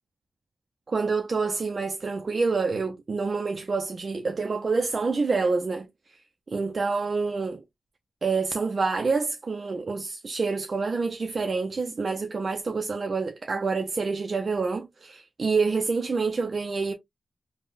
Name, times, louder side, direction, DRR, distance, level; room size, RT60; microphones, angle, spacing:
voice 1, 0.9-5.9 6.5-7.6 8.2-16.9, right 4 dB, 55° right, 0.4 m, -27 dB
3.6 x 2.1 x 2.4 m
cardioid pair, 50°, 0 cm